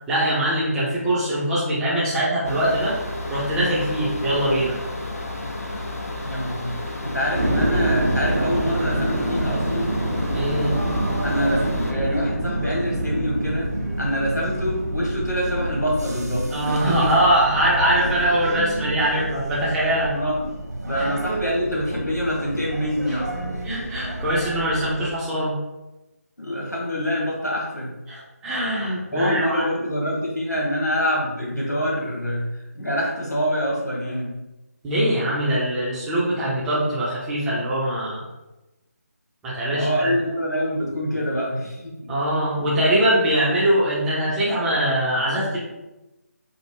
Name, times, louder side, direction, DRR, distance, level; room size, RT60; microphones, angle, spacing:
voice 1, 0.1-3.0 3.3-4.8 10.3-10.7 16.5-20.2 21.0-21.1 23.6-25.6 28.1-29.8 34.8-38.2 39.4-40.1 42.1-45.6, right 1 dB, 5° right, -9 dB, 0.5 m, -22 dB
sound 1, 2.4-11.9, left 1 dB, 65° left, 0.7 m, -32 dB
voice 2, 6.2-9.9 11.2-13.7 14.0-17.1 18.0-18.1 20.1-20.6 20.8-23.6 26.4-28.0 29.1-34.4 39.7-42.1, equal, 90° left, -3 dB, 1.5 m, -26 dB
sound 2, 7.3-25.1, right 1 dB, 75° right, 0.9 m, -27 dB
4.2 x 2.0 x 3.5 m, 1.0 s
figure-of-eight pair, 160°, 9 cm